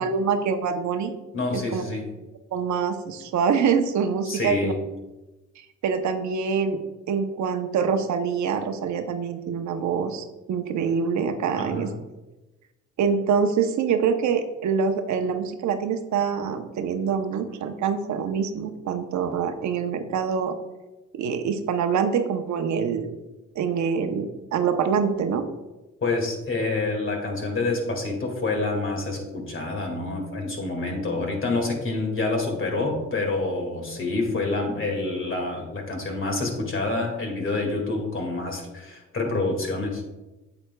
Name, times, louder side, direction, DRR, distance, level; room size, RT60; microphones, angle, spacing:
voice 1, 0.0-1.1 1.5-1.8 2.5-4.7 5.8-11.9 13.0-20.5 21.1-23.1 23.6-25.5, right 6 dB, 70° right, 7 dB, 0.8 m, -25 dB
voice 2, 1.3-2.0 4.3-4.8 11.6-11.9 26.0-40.0, left 3 dB, 40° left, 2 dB, 2.1 m, -27 dB
8.6 x 7.9 x 2.3 m, 1.1 s
cardioid pair, 90°, 30 cm